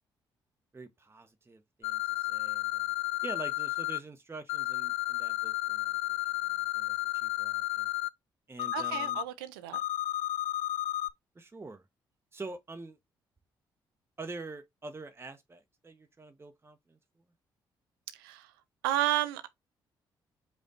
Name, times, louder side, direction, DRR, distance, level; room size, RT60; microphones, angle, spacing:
voice 1, 0.7-2.9 3.2-6.2 6.7-7.9 8.5-9.2 11.3-11.9 12.3-13.0 14.2-17.0, right 3 dB, 20° right, 0.9 m, -46 dB
sound 1, 1.8-4.0 4.5-8.1 8.6-9.2 9.7-11.1, left 16 dB, 60° left, 0.4 m, -32 dB
voice 2, 8.7-9.8 18.1-18.5 18.8-19.5, right 13 dB, 75° right, 0.5 m, -32 dB
5.1 x 2.3 x 4.0 m
figure-of-eight pair, 40°, 12 cm